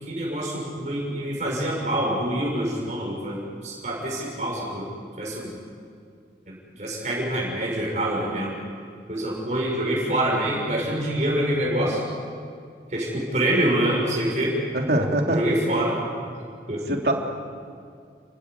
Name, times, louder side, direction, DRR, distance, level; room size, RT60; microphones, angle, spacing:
voice 1, 0.0-4.9 5.2-5.6 6.5-8.5 9.1-12.0 12.9-14.6 15.3-15.9 16.7-17.0, right 1 dB, 40° right, -4 dB, 6.1 m, -26 dB
voice 2, 14.7-15.4 16.9-17.1, right 1 dB, 65° right, 1 dB, 3.2 m, -22 dB
30.0 x 15.5 x 9.6 m, 2.2 s
head